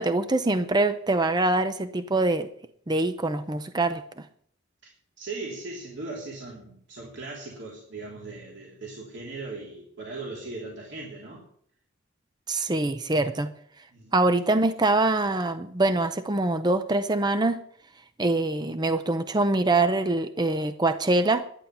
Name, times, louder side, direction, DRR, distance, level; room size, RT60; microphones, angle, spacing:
voice 1, 0.0-2.5 2.9-4.2 12.5-13.5 14.1-17.6 18.2-21.4, right 2 dB, 20° right, 10 dB, 0.6 m, -24 dB
voice 2, 5.2-11.4 13.9-14.1, right 3 dB, 60° right, -3 dB, 3.3 m, -38 dB
11.5 x 10.0 x 6.8 m, 0.64 s
head